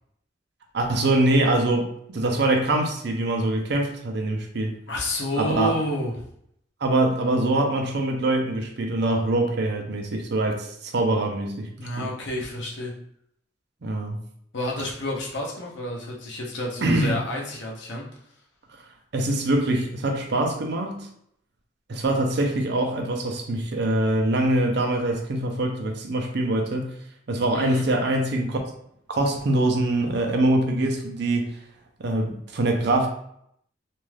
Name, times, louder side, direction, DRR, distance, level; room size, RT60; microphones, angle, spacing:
voice 1, 0.7-4.7 5.4-5.7 6.8-12.1 13.8-14.2 16.8-17.1 19.1-21.1 21.9-26.9 27.3-28.6 29.1-31.6 32.0-33.1, right 1 dB, 60° right, 3 dB, 0.6 m, -24 dB
voice 2, 4.9-6.1 11.8-12.9 14.5-18.0 27.5-27.9, left 1 dB, 65° left, -1 dB, 0.8 m, -29 dB
2.5 x 2.3 x 3.2 m, 0.72 s
head